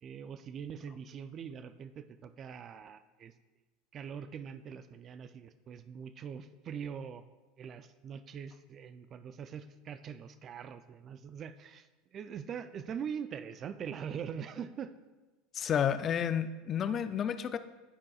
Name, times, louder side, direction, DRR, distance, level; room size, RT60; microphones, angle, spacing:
voice 1, 0.0-3.3 3.9-7.2 7.6-11.9 12.1-14.9, right 7 dB, 40° right, 12 dB, 0.4 m, -43 dB
voice 2, 15.5-17.6, left 8 dB, 40° left, 12 dB, 0.4 m, -31 dB
14.0 x 4.8 x 2.4 m, 1.2 s
hypercardioid pair, 85°, 0 cm